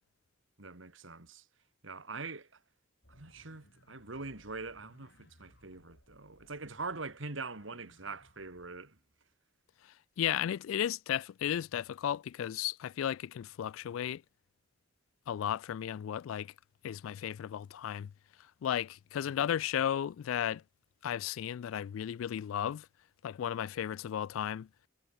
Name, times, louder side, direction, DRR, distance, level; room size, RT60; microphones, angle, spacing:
voice 1, 0.6-1.5 1.8-2.6 3.1-9.0, right 3 dB, 75° right, 2.3 m, -43 dB
sound 1, 3.0-8.8, left 1 dB, 60° left, 7.2 m, -63 dB
voice 2, 9.8-14.2 15.3-16.5 16.8-18.1 18.4-20.6 21.0-22.9 23.2-24.7, left 10 dB, 90° left, 0.3 m, -34 dB
head